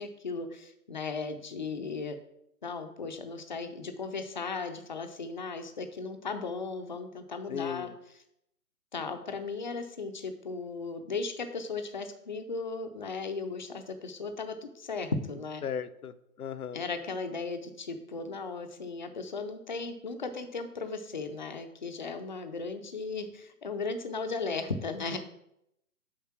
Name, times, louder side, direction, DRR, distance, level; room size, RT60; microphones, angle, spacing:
voice 1, 0.0-2.2 2.6-8.2 8.9-15.6 16.7-25.2, left 4 dB, 30° left, 8 dB, 0.6 m, -36 dB
voice 2, 7.5-7.9 15.6-16.1 16.4-16.8, left 7 dB, 70° left, 13 dB, 0.7 m, -36 dB
7.3 x 5.3 x 5.9 m, 0.80 s
hypercardioid pair, 150°, 46 cm